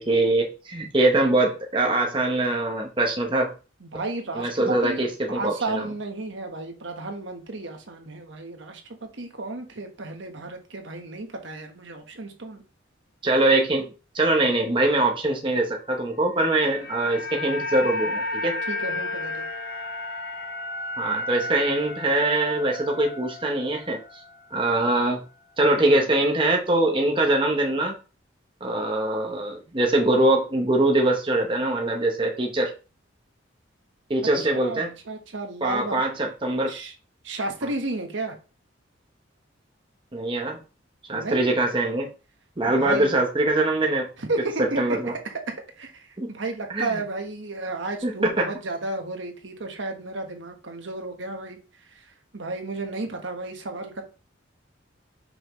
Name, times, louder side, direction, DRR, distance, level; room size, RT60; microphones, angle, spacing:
voice 1, 0.0-3.5 4.3-5.8 13.2-13.9 14.1-18.6 21.0-24.2 24.5-25.2 25.6-27.9 28.6-32.7 34.1-34.9 35.6-36.7 40.1-40.6 41.1-42.1 42.6-44.1 44.8-45.1 46.2-46.3 46.7-46.9 48.0-48.5, right 2 dB, 25° right, 0.8 m, -23 dB
voice 2, 3.8-8.8 9.1-12.6 18.7-19.4 34.5-36.0 36.7-36.9 37.2-38.4 41.1-41.6 42.7-43.2 44.2-51.6 51.9-52.0 52.3-54.0, right 2 dB, 70° right, 1.2 m, -33 dB
sound 1, 16.2-24.5 24.8-24.9, left 2 dB, 55° left, 1.2 m, -33 dB
5.6 x 5.5 x 3.1 m
head